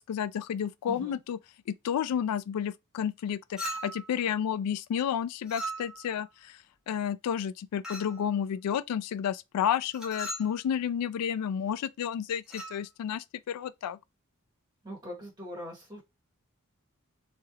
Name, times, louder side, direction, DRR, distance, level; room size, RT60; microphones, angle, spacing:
voice 1, 0.0-1.4 1.7-6.6 6.9-14.0, left 8 dB, 90° left, 0.3 m, -31 dB
voice 2, 0.8-1.2 14.8-16.0, equal, 20° right, 1.4 m, -41 dB
Chink clink, 3.6-4.1 5.5-6.1 7.8-8.2 9.9-10.5 12.4-12.8, equal, 5° right, 1.1 m, -38 dB
3.2 x 2.8 x 2.3 m
head